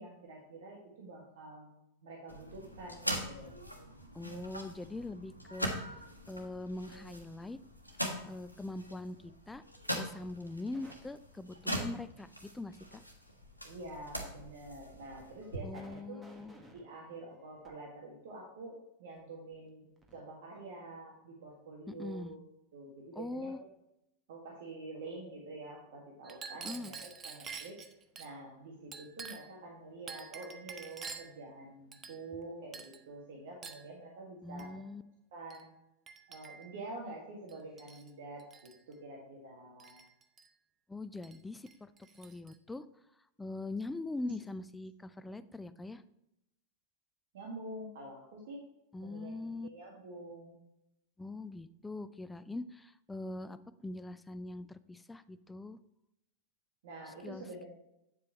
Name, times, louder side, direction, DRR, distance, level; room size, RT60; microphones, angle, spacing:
voice 1, 0.0-1.7 2.0-3.6 13.6-16.2 16.7-19.9 20.1-22.4 22.7-23.5 24.3-27.8 28.2-34.8 35.3-35.7 36.3-40.0 47.3-48.6 49.0-50.6 56.8-57.7, right 2 dB, 55° right, -2 dB, 1.8 m, -47 dB
sound 1, 2.3-15.6, equal, 90° left, 1.2 m, -42 dB
voice 2, 4.1-5.7 6.3-7.6 8.2-9.6 9.9-13.0 15.6-16.5 21.9-22.4 23.2-23.6 26.6-26.9 34.4-35.0 40.9-41.9 42.2-42.9 43.4-46.0 48.9-49.7 51.2-55.8 57.2-57.7, left 2 dB, 10° left, 14 dB, 0.4 m, -42 dB
sound 2, 10.7-10.9 14.0-14.3 14.8-14.9 15.4-17.7 19.5-19.6 20.0-20.1 20.5-20.6, right 1 dB, 10° right, 1.5 m, -59 dB
Chink clink, 26.2-28.3 28.9-29.6 30.1-31.4 31.9-32.4 32.7-33.0 33.6-33.9 34.6-34.8 35.5-35.7 36.1-36.8 37.5-38.1 38.4-38.8 39.8-40.5 41.2-41.4 41.7-42.6, right 5 dB, 25° right, 0.7 m, -48 dB
8.6 x 7.5 x 3.0 m, 0.84 s
figure-of-eight pair, 90°, 0 cm